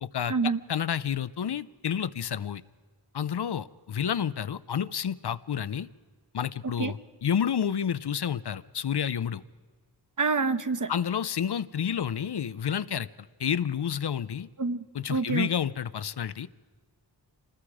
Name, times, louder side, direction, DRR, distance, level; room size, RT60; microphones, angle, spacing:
voice 1, 0.0-2.6 3.1-5.9 6.3-9.4 10.9-14.5 14.9-16.5, left 8 dB, 75° left, 16 dB, 0.7 m, -30 dB
voice 2, 10.2-10.9 14.6-14.8 15.1-15.5, right 4 dB, 50° right, 11 dB, 1.0 m, -26 dB
27.0 x 19.5 x 4.9 m, 1.5 s
wide cardioid pair, 80°, 40 cm